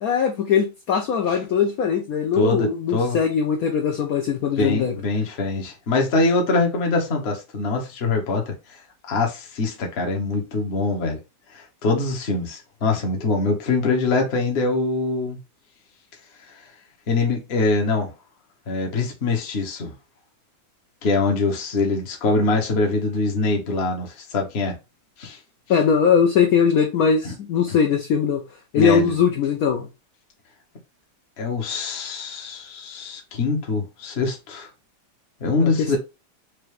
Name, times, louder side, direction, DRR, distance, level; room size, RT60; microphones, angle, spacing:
voice 1, 0.0-4.9 25.7-28.4 28.7-29.9 35.6-36.0, left 7 dB, 70° left, 0.9 m, -20 dB
voice 2, 2.4-3.2 4.6-8.8 9.1-11.2 11.5-15.4 17.1-18.1 18.7-19.9 21.0-24.8 25.2-25.4 27.2-27.3 28.7-29.2 31.4-34.7 35.4-36.0, left 3 dB, 45° left, 0.9 m, -23 dB
4.6 x 2.5 x 3.2 m
omnidirectional pair, 2.1 m